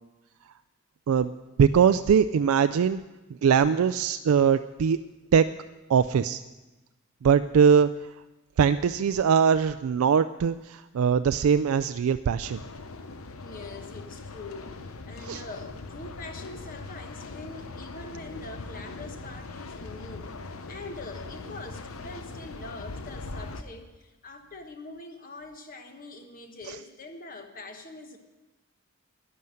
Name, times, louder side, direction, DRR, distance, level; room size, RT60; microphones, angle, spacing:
voice 1, 1.6-3.0 3.4-5.0 5.3-5.5 5.9-6.4 7.2-7.9 8.6-12.6 15.3-15.4 26.7-26.8, right 7 dB, 85° right, 11 dB, 0.4 m, -21 dB
sound 1, 12.4-23.6, left 3 dB, 85° left, 0.9 m, -41 dB
voice 2, 13.4-20.3 20.7-28.2, left 2 dB, 40° left, 5 dB, 1.2 m, -43 dB
11.0 x 10.5 x 7.7 m, 1.1 s
head